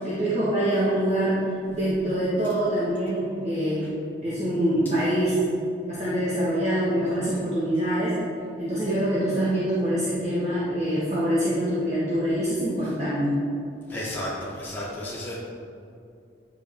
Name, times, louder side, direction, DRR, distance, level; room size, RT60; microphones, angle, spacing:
voice 1, 0.0-1.4 1.7-3.9 4.2-5.4 5.9-8.2 8.6-13.3, right 1 dB, 35° right, -10 dB, 1.3 m, -25 dB
voice 2, 13.9-15.4, left 1 dB, 10° left, -7 dB, 1.1 m, -33 dB
9.7 x 5.1 x 3.5 m, 2.5 s
head